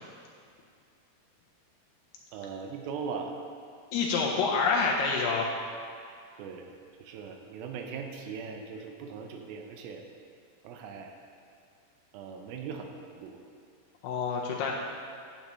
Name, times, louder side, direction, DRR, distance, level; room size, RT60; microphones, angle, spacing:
voice 1, 2.3-3.3 6.4-6.7 7.0-10.0 10.6-11.1 12.1-12.9 13.2-13.4, right 6 dB, 80° right, 3 dB, 2.2 m, -39 dB
voice 2, 3.9-5.5 14.0-14.7, left 4 dB, 80° left, -2 dB, 2.6 m, -27 dB
9.4 x 7.1 x 3.0 m, 2.2 s
omnidirectional pair, 4.7 m